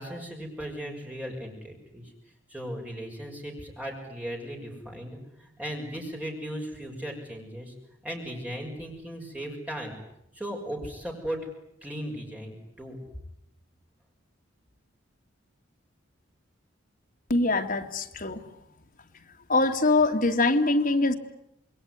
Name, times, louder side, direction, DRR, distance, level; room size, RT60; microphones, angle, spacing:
voice 1, 0.0-2.1 2.5-7.7 8.0-9.9 10.3-11.4 11.8-13.0, equal, 10° right, 0 dB, 6.3 m, -37 dB
voice 2, 17.3-18.5 19.5-21.1, left 2 dB, 45° left, 3 dB, 2.3 m, -23 dB
28.0 x 21.5 x 9.8 m, 0.78 s
head